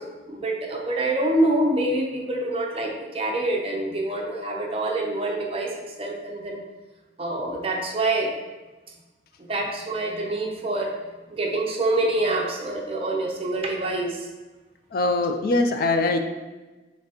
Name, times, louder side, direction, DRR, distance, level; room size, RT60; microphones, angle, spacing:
voice 1, 0.0-5.7 6.0-6.6 7.2-8.3 9.5-10.9 11.3-14.3, right 2 dB, 30° right, 0 dB, 0.6 m, -26 dB
voice 2, 14.9-16.2, left 2 dB, 50° left, 6 dB, 0.3 m, -22 dB
5.7 x 3.2 x 2.9 m, 1.2 s
head